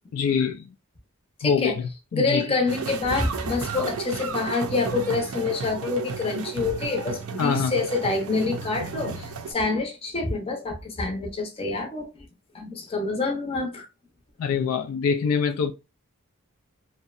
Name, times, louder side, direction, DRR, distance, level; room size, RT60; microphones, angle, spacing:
voice 1, 0.1-0.7 1.4-2.4 7.4-7.7 14.4-15.7, left 6 dB, 70° left, 0.3 m, -24 dB
voice 2, 1.4-1.8 2.1-12.3 12.5-13.9, left 3 dB, 25° left, 0.6 m, -27 dB
sound 1, 2.7-9.5, right 5 dB, 75° right, 0.5 m, -33 dB
2.7 x 2.1 x 2.4 m
head